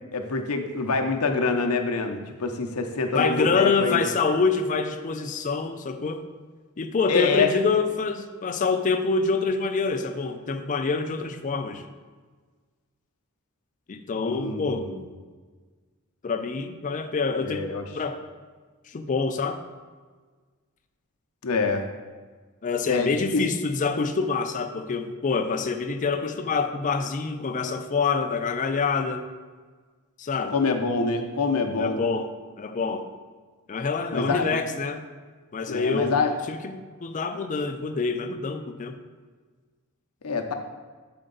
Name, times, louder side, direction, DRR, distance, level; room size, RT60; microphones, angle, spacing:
voice 1, 0.0-4.0 7.1-7.5 14.3-15.0 17.4-17.8 21.4-21.9 22.9-23.4 30.5-32.0 34.1-34.6 35.7-36.3 40.2-40.5, left 4 dB, 75° left, 5 dB, 0.7 m, -26 dB
voice 2, 3.1-6.2 6.8-11.9 13.9-14.9 16.2-17.7 18.0-18.2 18.9-19.6 22.6-29.2 30.2-30.6 31.8-32.3 32.6-33.1 33.7-35.0 35.5-36.1 36.5-38.9, left 4 dB, 35° left, 7 dB, 0.4 m, -26 dB
7.7 x 4.4 x 3.9 m, 1.5 s
head